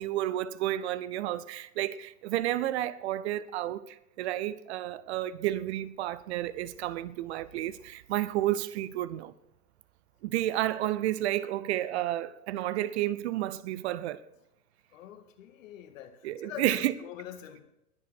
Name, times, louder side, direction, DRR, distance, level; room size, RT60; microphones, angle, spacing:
voice 1, 0.0-9.3 10.2-14.2 16.2-17.0, right 14 dB, 45° right, 0.8 m, -31 dB
voice 2, 14.9-17.6, left 10 dB, 55° left, 2.0 m, -44 dB
21.5 x 8.4 x 4.5 m
hypercardioid pair, 110°, 46 cm